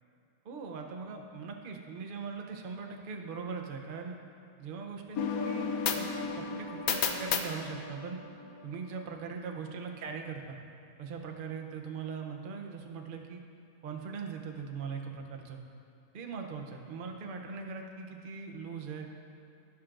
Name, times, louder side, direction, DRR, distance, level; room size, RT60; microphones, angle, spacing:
voice 1, 0.4-4.2 4.6-5.7 5.9-8.2 8.6-10.6 11.0-13.4 13.8-15.6 16.1-19.1, right 5 dB, 50° right, 3 dB, 0.7 m, -40 dB
sound 1, 5.2-8.7, left 6 dB, 75° left, 1.0 m, -33 dB
16.0 x 5.9 x 2.5 m, 2.7 s
omnidirectional pair, 1.6 m